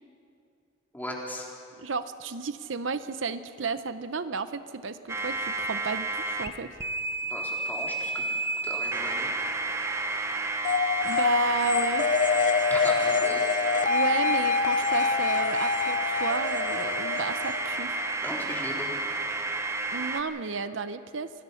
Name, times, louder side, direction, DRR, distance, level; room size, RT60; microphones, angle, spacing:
voice 1, 0.9-1.5 7.2-8.3 8.6-9.3 12.7-13.5 18.2-18.9, left 1 dB, 10° left, -3 dB, 3.8 m, -37 dB
voice 2, 1.8-6.7 11.0-12.2 13.9-18.0 19.9-21.3, right 4 dB, 80° right, 11 dB, 0.8 m, -32 dB
sound 1, 5.1-6.5 6.8-20.2, right 2 dB, 15° right, 1.1 m, -31 dB
sound 2, 10.6-18.1, left 5 dB, 40° left, 0.5 m, -26 dB
26.5 x 19.0 x 5.8 m, 2.4 s
head